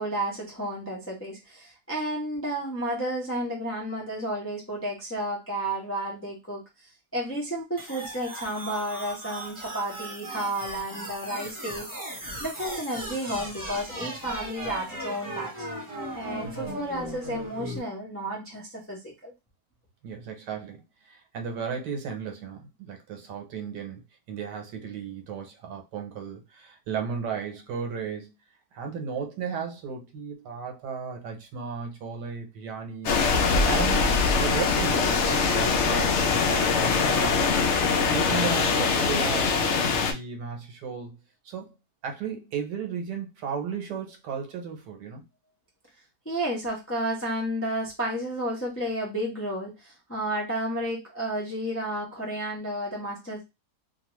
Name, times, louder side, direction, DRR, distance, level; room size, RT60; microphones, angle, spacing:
voice 1, 0.0-6.6 7.1-11.9 12.4-15.7 16.1-19.3 46.2-53.4, right 1 dB, 20° left, 0.3 m, -32 dB
sound 1, 7.8-17.8, right 1 dB, 20° right, 0.6 m, -37 dB
voice 2, 16.4-16.7 20.0-24.0 24.3-28.3 28.7-37.4 38.1-41.2 41.4-41.7 42.0-45.2, right 6 dB, 80° right, 1.3 m, -35 dB
sound 2, 33.0-40.1, left 4 dB, 75° left, 0.6 m, -23 dB
2.8 x 2.4 x 3.0 m
omnidirectional pair, 1.8 m